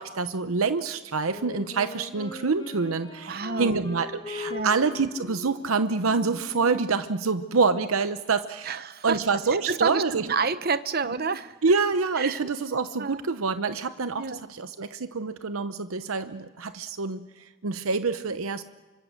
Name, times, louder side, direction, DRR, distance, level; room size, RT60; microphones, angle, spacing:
voice 1, 0.0-8.8 9.0-10.3 11.1-11.2 11.6-17.3 17.6-18.6, right 4 dB, 85° right, 11 dB, 0.8 m, -26 dB
Wind instrument woodwind instrument, 1.3-8.0, left 4 dB, 20° left, 1.9 m, -41 dB
voice 2, 3.2-3.8 4.5-4.7 8.7-9.2 9.7-11.5 12.2-12.4 13.0-13.2 14.2-14.4, right 5 dB, 45° right, 13 dB, 0.9 m, -29 dB
27.0 x 25.0 x 6.6 m, 1.3 s
head